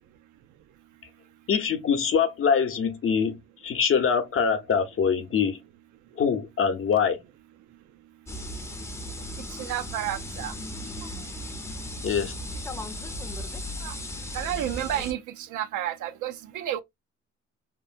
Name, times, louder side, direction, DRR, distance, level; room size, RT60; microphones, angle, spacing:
voice 1, 1.5-3.4 3.6-5.6 6.2-7.2 12.0-12.3, left 6 dB, 45° left, 0.7 m, -24 dB
sound 1, 8.3-15.1, left 1 dB, 10° left, 0.5 m, -36 dB
voice 2, 9.5-10.5 13.8-14.0 14.3-16.8, right 12 dB, 80° right, 0.5 m, -31 dB
2.9 x 2.1 x 2.4 m
cardioid pair, 90°, 30 cm